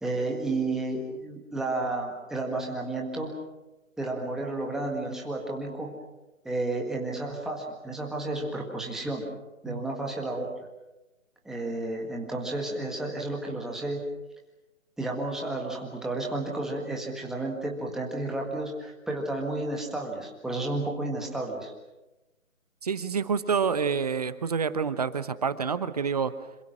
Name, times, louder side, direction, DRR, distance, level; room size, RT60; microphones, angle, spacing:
voice 1, 0.0-3.4 4.0-6.0 6.4-9.3 9.6-10.5 11.5-14.1 15.0-21.7, right 2 dB, ahead, 0 dB, 1.8 m, -32 dB
voice 2, 22.8-26.3, right 6 dB, 30° right, 13 dB, 1.0 m, -28 dB
26.5 x 26.0 x 6.3 m, 1.0 s
figure-of-eight pair, 150°, 40 cm